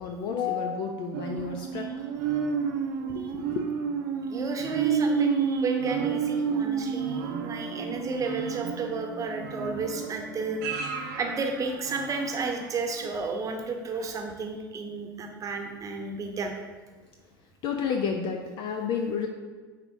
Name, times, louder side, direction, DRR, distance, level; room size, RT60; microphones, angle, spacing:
voice 1, 0.0-2.1 3.1-3.6 17.6-19.3, left 6 dB, 45° left, 4 dB, 0.5 m, -31 dB
sound 1, 1.1-12.6 13.0-13.1, right 6 dB, 55° right, 0.7 m, -30 dB
voice 2, 4.3-16.6, right 3 dB, 30° right, 3 dB, 0.9 m, -32 dB
9.6 x 4.0 x 2.7 m, 1.4 s
figure-of-eight pair, 70°, 12 cm